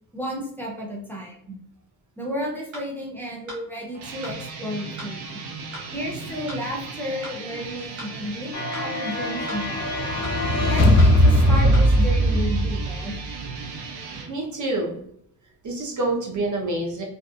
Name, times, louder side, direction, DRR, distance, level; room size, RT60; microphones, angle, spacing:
voice 1, 0.1-1.5 2.2-5.3 5.9-9.9 10.7-13.1, equal, 5° left, -3 dB, 0.7 m, -32 dB
sound 1, 2.7-2.9 3.5-3.6 4.2-4.4 5.0-5.1 5.7-5.9 6.5-6.6 7.2-7.4 8.0-8.1 8.7-8.9 9.5-9.6 10.2-10.4 11.0-11.1 11.7-11.9, right 1 dB, 85° right, 1.1 m, -38 dB
sound 2, 3.9-14.3, right 4 dB, 70° right, 0.7 m, -36 dB
sound 3, 8.5-13.2, equal, 40° left, 0.7 m, -19 dB
voice 2, 14.3-15.0 15.6-17.0, right 2 dB, 45° right, -1 dB, 0.9 m, -27 dB
2.7 x 2.4 x 2.3 m, 0.69 s
supercardioid pair, 60°, 42 cm